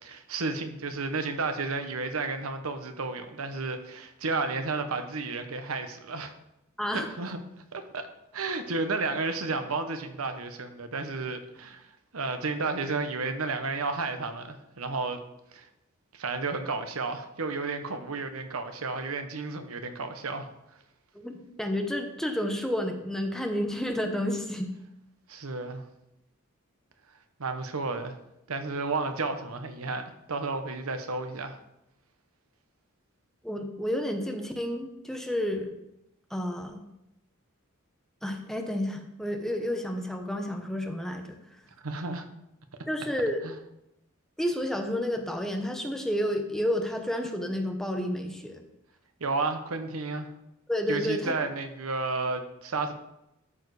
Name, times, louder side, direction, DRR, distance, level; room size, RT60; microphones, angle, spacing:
voice 1, 0.0-6.3 6.9-7.4 7.7-8.1 8.3-11.9 12.1-15.2 15.5-15.7 16.1-20.5 25.3-25.8 27.4-28.2 28.5-31.6 41.8-42.2 43.4-43.5 49.2-50.3 50.9-52.9, right 3 dB, 80° right, 8 dB, 1.0 m, -32 dB
voice 2, 21.2-24.7 33.4-35.7 36.3-36.8 38.2-41.4 42.9-43.4 44.4-48.6 50.7-51.3, equal, ahead, 4 dB, 0.9 m, -30 dB
12.5 x 4.9 x 4.8 m, 0.86 s
head